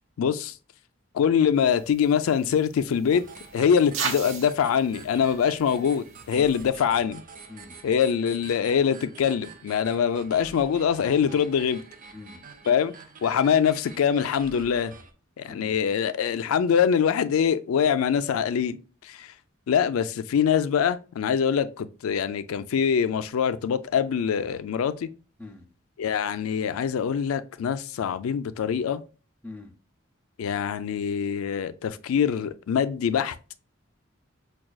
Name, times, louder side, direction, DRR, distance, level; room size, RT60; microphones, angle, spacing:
voice 1, 0.2-0.5 1.1-3.2 3.5-7.2 7.8-11.8 12.7-12.9 13.2-14.9 15.4-18.8 19.0-19.3 19.7-25.1 26.0-29.0 30.4-33.4, left 7 dB, 85° left, 0.3 m, -24 dB
sound 1, 1.6-6.7, right 5 dB, 65° right, 0.8 m, -38 dB
sound 2, 3.1-15.1, right 5 dB, 40° right, 0.5 m, -47 dB
voice 2, 12.1-12.4 15.5-15.8 25.4-25.7 29.4-29.7, left 3 dB, 10° left, 0.5 m, -43 dB
5.9 x 2.3 x 2.2 m
head